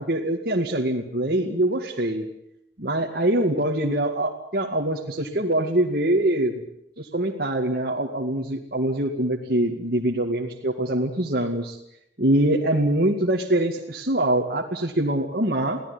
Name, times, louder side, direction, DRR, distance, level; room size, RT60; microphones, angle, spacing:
voice 1, 0.0-2.3 2.8-6.6 7.0-11.8 12.2-15.8, right 1 dB, 55° right, -1 dB, 2.3 m, -24 dB
24.0 x 17.0 x 9.7 m, 0.75 s
head